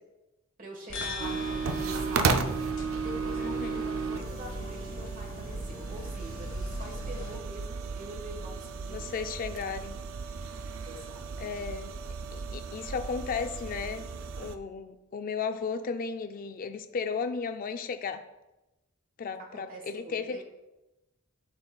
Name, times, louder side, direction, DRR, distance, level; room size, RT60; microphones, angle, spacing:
voice 1, 0.6-2.5 2.9-9.1 10.8-11.2 19.4-20.4, right 1 dB, 40° right, 1 dB, 1.2 m, -45 dB
sound 1, 0.9-7.4, left 1 dB, 60° left, 1.1 m, -39 dB
sound 2, 1.2-14.6, right 5 dB, 65° right, 0.4 m, -34 dB
voice 2, 3.4-3.9 8.9-10.0 11.4-14.1 14.4-18.2 19.2-20.4, left 5 dB, 40° left, 8 dB, 0.3 m, -35 dB
11.0 x 3.9 x 2.3 m, 1.0 s
head